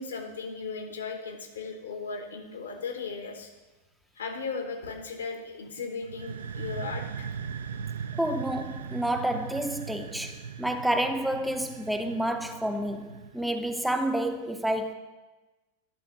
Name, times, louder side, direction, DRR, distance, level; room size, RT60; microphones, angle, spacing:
voice 1, 0.0-3.5 4.2-7.3, left 4 dB, 70° left, 1.1 m, -36 dB
sound 1, 6.0-13.7, right 6 dB, 65° right, 0.3 m, -39 dB
voice 2, 8.2-14.9, right 1 dB, ahead, 0.5 m, -29 dB
11.0 x 4.1 x 5.3 m
figure-of-eight pair, 90°, 0 cm